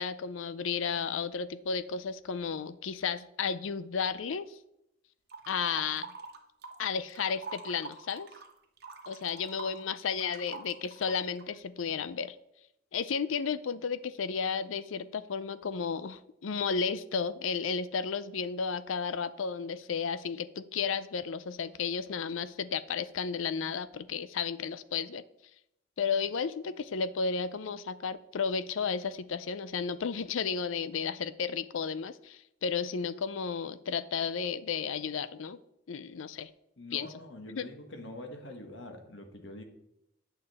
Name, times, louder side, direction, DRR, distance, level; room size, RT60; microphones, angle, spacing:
voice 1, 0.0-4.6 5.5-6.1 6.8-8.3 9.1-12.4 12.9-25.2 26.0-35.6 35.9-36.5 36.9-37.1 37.6-37.7, left 6 dB, 85° left, 15 dB, 0.5 m, -33 dB
sound 1, 5.3-6.8 7.1-11.5, right 3 dB, 55° right, 1.1 m, -45 dB
voice 2, 36.8-39.6, left 1 dB, 65° left, 4 dB, 1.4 m, -45 dB
9.0 x 6.7 x 4.2 m, 0.83 s
head